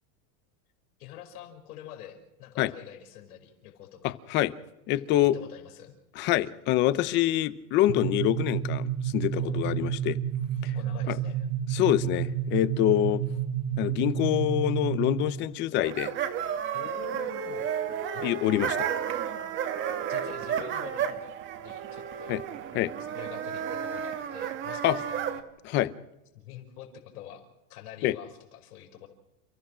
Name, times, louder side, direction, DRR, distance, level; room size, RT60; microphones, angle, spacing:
voice 1, 1.0-4.2 4.9-5.0 5.3-5.9 9.4-9.6 10.6-11.5 16.7-17.8 18.1-18.3 20.1-22.4 23.1-25.5 26.3-29.1, left 10 dB, 80° left, 5.0 m, -46 dB
voice 2, 4.0-4.5 4.9-5.4 6.2-10.2 11.1-11.2 11.7-13.2 13.8-16.1 18.2-18.9 22.3-22.4 22.7-22.9 24.8-25.0 25.6-25.9 28.0-28.1, left 14 dB, 25° left, 0.6 m, -26 dB
sound 1, 7.9-15.4, right 9 dB, 45° right, 1.5 m, -30 dB
sound 2, 15.8-25.4, right 9 dB, 25° right, 1.4 m, -32 dB
29.5 x 15.5 x 6.2 m
supercardioid pair, 170°, 44 cm